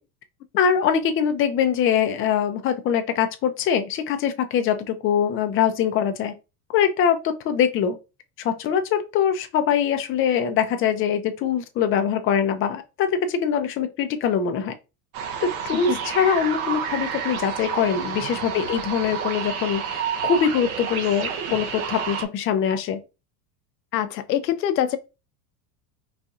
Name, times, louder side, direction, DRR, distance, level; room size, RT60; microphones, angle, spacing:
voice 1, 0.6-6.3 6.7-8.0 8.4-14.7 15.4-23.0, left 8 dB, 30° left, 0.4 m, -23 dB
sound 1, 15.1-22.2, right 7 dB, 65° right, 0.8 m, -29 dB
voice 2, 23.9-25.0, left 11 dB, 90° left, 0.6 m, -24 dB
4.1 x 2.7 x 2.3 m
hypercardioid pair, 100°, 48 cm